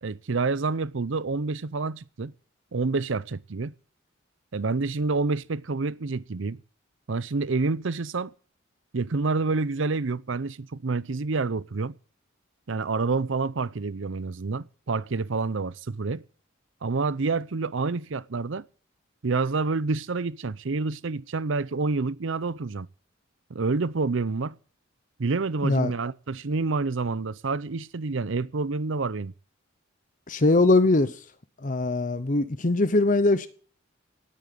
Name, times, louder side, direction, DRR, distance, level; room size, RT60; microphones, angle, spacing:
voice 1, 0.0-2.3 2.7-3.7 4.5-6.6 7.1-8.3 8.9-12.0 12.7-16.2 16.8-18.6 19.2-22.9 23.5-24.6 25.2-29.3, right 3 dB, 70° right, 0.6 m, -28 dB
voice 2, 30.3-31.2 31.6-33.5, left 2 dB, 40° left, 0.8 m, -21 dB
18.0 x 8.9 x 7.9 m
head